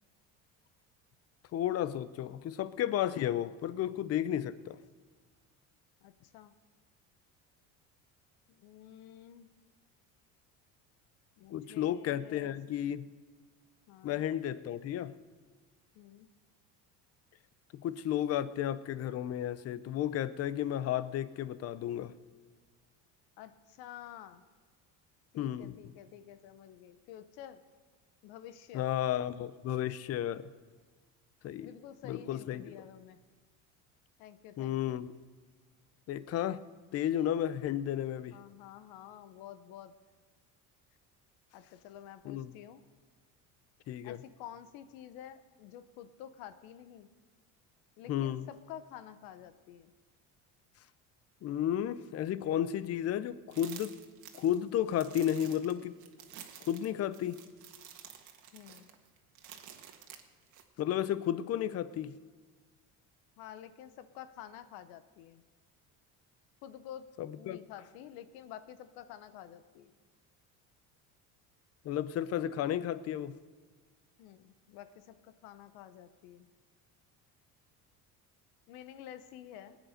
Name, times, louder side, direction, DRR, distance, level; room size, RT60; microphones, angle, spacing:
voice 1, 1.5-4.8 11.5-13.1 14.0-15.1 17.7-22.1 25.4-25.9 28.7-30.5 31.4-31.7 32.0-32.6 34.6-35.1 36.1-36.6 36.9-38.4 42.2-42.5 43.9-44.2 48.1-48.5 51.4-54.0 54.3-56.0 56.7-57.4 60.8-62.1 67.2-67.6 71.8-73.3, left 11 dB, 45° left, 16 dB, 0.6 m, -33 dB
voice 2, 6.0-6.5 8.5-9.5 11.4-12.9 13.9-14.3 15.9-16.3 23.4-24.4 25.3-27.6 28.2-28.9 31.6-33.2 34.2-35.0 38.3-39.9 41.5-42.8 44.0-47.1 48.0-49.9 58.5-58.9 63.4-65.4 66.6-67.1 67.4-69.9 74.2-76.5 78.7-79.8, left 10 dB, 80° left, 12 dB, 0.9 m, -50 dB
sound 1, 53.5-60.6, right 9 dB, 55° right, 1.6 m, -51 dB
20.0 x 9.3 x 5.1 m, 1.5 s
cardioid pair, 115°, 35 cm